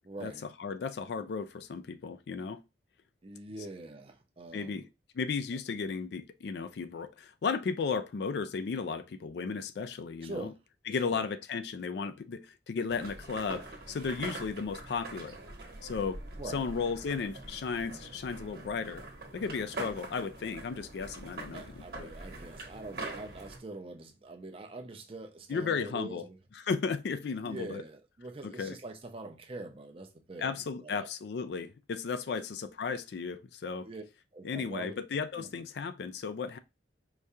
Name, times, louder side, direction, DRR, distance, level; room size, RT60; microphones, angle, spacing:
voice 1, 0.0-0.4 3.2-4.9 10.2-10.6 11.0-11.3 16.4-16.7 21.5-26.4 27.4-31.1 32.3-32.4 33.8-34.0 34.3-35.0 35.4-35.6, right 2 dB, 30° right, 0.6 m, -44 dB
voice 2, 0.6-2.6 4.5-4.9 5.1-10.5 10.9-15.4 15.8-16.2 16.5-19.0 19.3-22.1 25.5-26.2 26.6-27.8 28.4-28.8 30.4-33.9 34.4-36.6, left 5 dB, 65° left, 0.4 m, -35 dB
sound 1, 12.9-23.6, right 2 dB, 55° right, 1.1 m, -44 dB
4.8 x 2.3 x 2.7 m
head